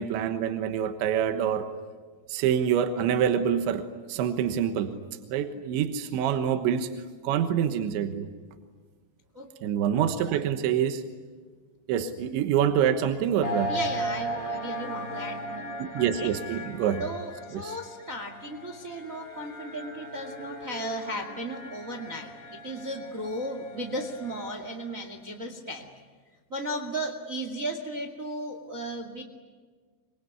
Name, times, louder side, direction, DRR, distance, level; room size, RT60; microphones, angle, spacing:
voice 1, 0.0-1.7 2.3-4.9 5.3-6.9 7.2-8.3 9.6-11.0 11.9-13.7 15.8-17.0 17.5-17.8, right 9 dB, 80° right, 8 dB, 3.5 m, -26 dB
sound 1, 13.4-24.8, right 1 dB, 25° left, 4.5 m, -37 dB
voice 2, 13.7-15.6 15.9-16.3 17.0-25.8 26.5-29.2, right 1 dB, 35° right, 5 dB, 1.4 m, -35 dB
26.0 x 23.0 x 9.6 m, 1.5 s
omnidirectional pair, 5.4 m